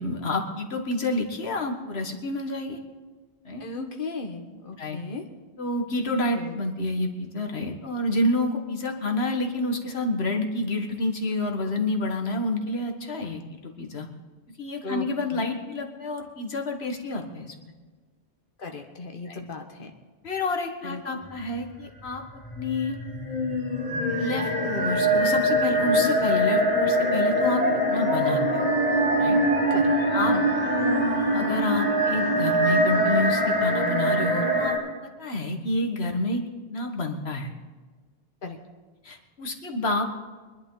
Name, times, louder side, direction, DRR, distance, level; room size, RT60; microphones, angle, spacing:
voice 1, 0.0-2.8 3.5-3.7 4.8-5.0 5.6-14.1 14.6-17.6 19.3-19.4 20.2-22.2 22.5-23.0 24.2-27.6 27.9-28.7 29.2-29.4 30.1-30.3 30.6-31.1 31.3-34.8 35.0-36.4 36.7-37.5 39.0-40.0, left 2 dB, 80° left, 3 dB, 1.9 m, -29 dB
voice 2, 3.6-5.2 6.3-6.6 14.8-15.5 18.6-19.9 20.8-21.0 29.7-29.9 30.3-30.4 38.4-38.6, left 3 dB, 55° left, 3 dB, 1.6 m, -36 dB
sound 1, 22.1-34.8, equal, 35° right, 5.7 m, -23 dB
24.0 x 11.5 x 4.0 m, 1.4 s
omnidirectional pair, 1.1 m